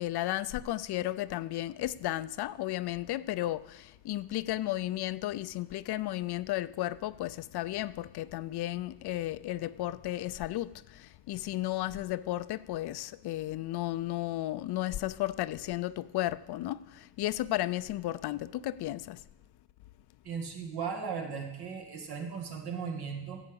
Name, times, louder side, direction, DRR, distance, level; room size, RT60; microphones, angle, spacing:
voice 1, 0.0-19.2, left 15 dB, 75° left, 0.5 m, -34 dB
voice 2, 20.2-23.4, right 6 dB, 70° right, 2.0 m, -37 dB
9.8 x 7.8 x 6.9 m
cardioid pair, 85°, 39 cm